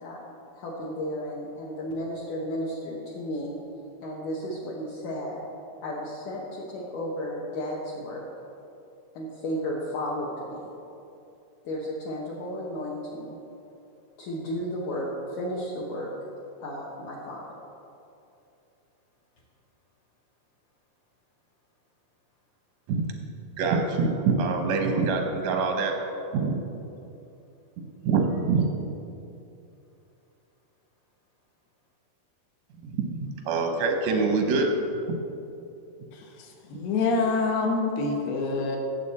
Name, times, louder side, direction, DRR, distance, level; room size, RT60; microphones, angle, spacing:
voice 1, 0.0-3.6 4.0-5.4 5.8-8.2 9.1-10.7 11.6-13.4 14.2-16.1 16.6-17.4, equal, 65° left, -4 dB, 2.3 m, -33 dB
voice 2, 23.6-25.9 26.3-26.6 28.0-28.7 32.8-34.7 35.1-35.2, right 4 dB, 75° right, 3 dB, 1.6 m, -25 dB
voice 3, 36.1-38.8, left 3 dB, 80° left, 1 dB, 3.2 m, -26 dB
17.5 x 7.4 x 4.2 m, 2.7 s
omnidirectional pair, 4.5 m